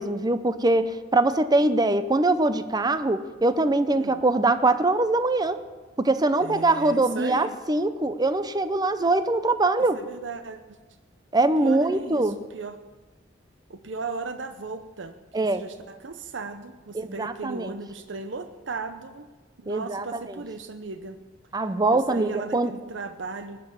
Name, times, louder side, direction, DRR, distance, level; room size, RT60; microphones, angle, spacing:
voice 1, 0.0-5.6 6.0-10.0 11.3-12.4 15.3-15.6 16.9-17.7 19.7-20.1 21.5-22.7, right 2 dB, 20° right, 11 dB, 0.6 m, -23 dB
voice 2, 6.4-7.6 9.9-10.8 11.3-12.8 13.7-19.3 19.6-21.2 21.9-23.6, right 4 dB, 70° right, 8 dB, 0.7 m, -37 dB
19.5 x 6.8 x 8.6 m, 1.3 s
head